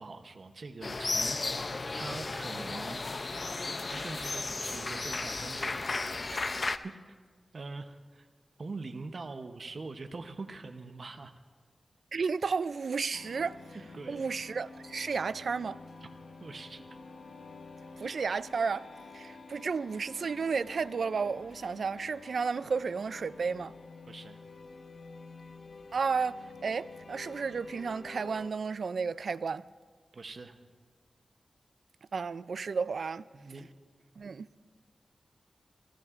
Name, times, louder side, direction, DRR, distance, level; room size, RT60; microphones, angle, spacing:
voice 1, 0.0-3.3 3.9-6.4 6.8-7.2 7.5-8.3 8.6-11.3 13.9-14.2 16.0-16.1 16.4-16.8 24.1-24.4 30.1-30.6 33.3-33.7, right 3 dB, 55° right, 0.8 m, -43 dB
sound 1, 0.8-6.8, left 3 dB, 45° left, 0.5 m, -34 dB
voice 2, 12.1-13.6 14.1-15.8 18.0-18.9 19.1-23.7 25.9-29.6 32.1-33.2 34.2-34.5, right 5 dB, 75° right, 0.3 m, -32 dB
sound 2, 13.1-28.5, left 3 dB, 70° left, 1.1 m, -49 dB
26.5 x 14.0 x 2.5 m
wide cardioid pair, 90°, 0 cm